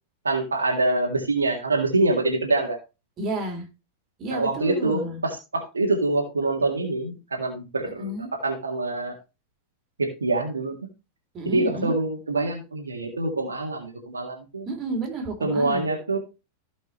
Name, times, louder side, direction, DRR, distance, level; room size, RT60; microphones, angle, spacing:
voice 1, 0.2-2.8 4.3-9.1 10.0-10.8 11.4-14.7 15.4-16.2, right 2 dB, 75° right, 2 dB, 1.9 m, -25 dB
voice 2, 3.2-3.7 4.2-5.2 8.0-8.3 11.3-12.0 14.7-15.9, right 2 dB, 30° right, 1 dB, 3.6 m, -31 dB
16.0 x 5.3 x 3.1 m, 0.28 s
figure-of-eight pair, 90°, 0 cm